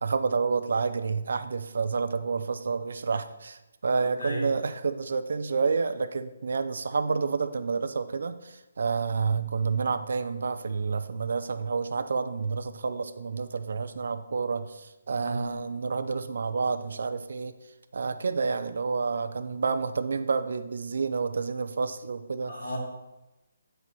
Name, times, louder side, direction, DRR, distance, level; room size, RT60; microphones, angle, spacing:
voice 1, 0.0-17.5 17.9-22.5, right 5 dB, 50° right, 10 dB, 0.5 m, -29 dB
voice 2, 15.1-15.6 22.5-22.8, right 1 dB, 50° left, -3 dB, 2.3 m, -34 dB
9.3 x 4.5 x 4.1 m, 1.0 s
hypercardioid pair, 180°, 0 cm